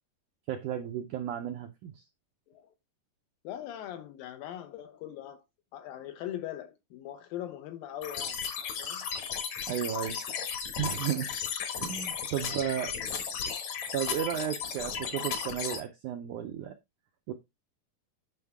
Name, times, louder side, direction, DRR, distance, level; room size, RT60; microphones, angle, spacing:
voice 1, 0.5-2.0 9.7-10.2 10.8-11.3 11.8-12.9 13.9-16.8 17.3-17.4, right 10 dB, 80° right, 1.8 m, -33 dB
voice 2, 3.4-5.4 5.7-8.4 8.8-9.1 12.3-12.8, left 11 dB, 75° left, 2.2 m, -41 dB
sound 1, 8.0-15.8, left 7 dB, 60° left, 2.0 m, -35 dB
9.5 x 5.5 x 3.6 m
omnidirectional pair, 4.6 m